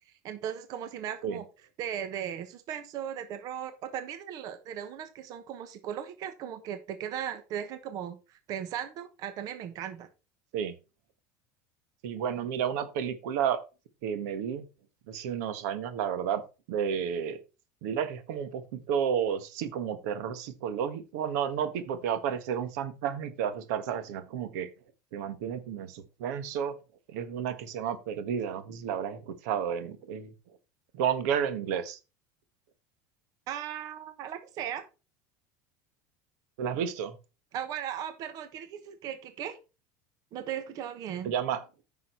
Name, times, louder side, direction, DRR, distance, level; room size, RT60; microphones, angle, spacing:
voice 1, 0.2-1.4 1.8-10.1 33.5-34.8 37.5-39.6 40.3-41.3, right 9 dB, 45° right, 10 dB, 1.1 m, -37 dB
voice 2, 12.0-13.6 14.0-14.6 15.1-16.4 16.7-17.4 17.8-24.7 25.1-26.8 27.1-30.3 30.9-32.0 36.6-37.2 41.2-41.6, right 8 dB, 75° right, 12 dB, 1.4 m, -31 dB
9.3 x 6.2 x 4.3 m, 0.30 s
cardioid pair, 155°, 9 cm